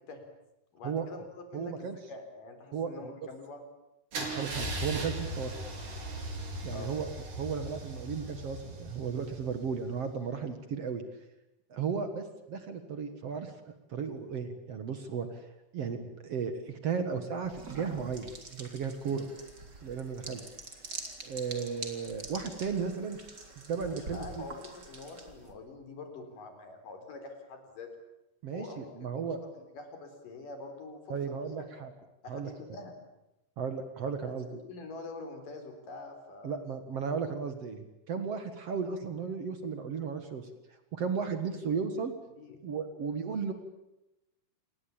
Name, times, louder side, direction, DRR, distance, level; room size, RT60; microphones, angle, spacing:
voice 1, 0.7-3.6 6.7-6.9 23.8-27.9 28.5-29.2 29.5-31.6 32.2-33.0 34.2-36.6 41.4-41.7 42.4-42.6, left 3 dB, 45° left, 6 dB, 5.3 m, -45 dB
voice 2, 1.5-2.0 2.7-3.1 4.2-5.5 6.6-7.1 7.3-11.0 11.7-15.4 15.7-19.3 19.8-20.4 21.2-23.2 23.6-24.4 28.4-29.4 31.1-31.9 32.3-32.5 33.6-34.5 36.4-40.5 40.9-42.1 42.6-43.5, right 6 dB, 65° right, 8 dB, 1.5 m, -35 dB
Car / Engine starting / Idling, 4.1-10.0, right 1 dB, 45° right, 6.0 m, -38 dB
sound 1, 17.4-25.5, right 3 dB, 25° right, 3.3 m, -46 dB
28.5 x 21.0 x 8.9 m, 0.92 s
omnidirectional pair, 5.6 m